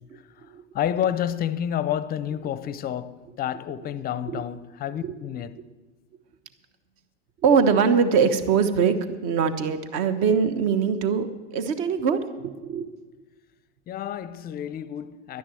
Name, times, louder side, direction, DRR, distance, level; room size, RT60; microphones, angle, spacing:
voice 1, 0.7-5.6 13.9-15.4, left 10 dB, 25° left, 0.5 m, -29 dB
voice 2, 7.4-12.9, right 6 dB, 50° right, 1.3 m, -22 dB
11.5 x 10.0 x 7.7 m
hypercardioid pair, 110°, 36 cm